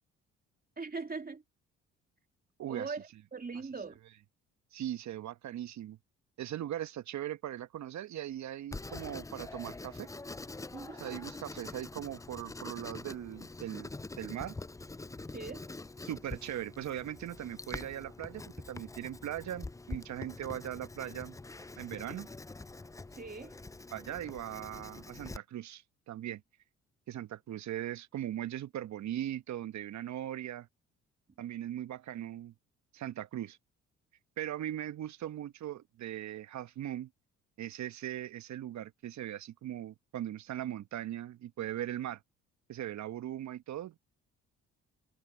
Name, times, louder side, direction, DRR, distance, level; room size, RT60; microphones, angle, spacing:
voice 1, 0.8-1.4 2.7-4.0 10.7-11.0 15.3-15.7 23.1-23.6, right 4 dB, 25° right, 3.1 m, -41 dB
voice 2, 2.6-2.9 4.7-6.0 6.4-10.1 10.9-14.5 16.0-21.4 21.8-22.3 23.9-26.4 27.1-30.7 31.4-32.5 32.9-33.6 34.4-37.1 37.6-42.2 42.7-43.9, right 12 dB, 60° right, 1.3 m, -39 dB
Writing, 8.7-25.4, left 3 dB, 10° left, 0.5 m, -45 dB
hypercardioid pair, 55°, 33 cm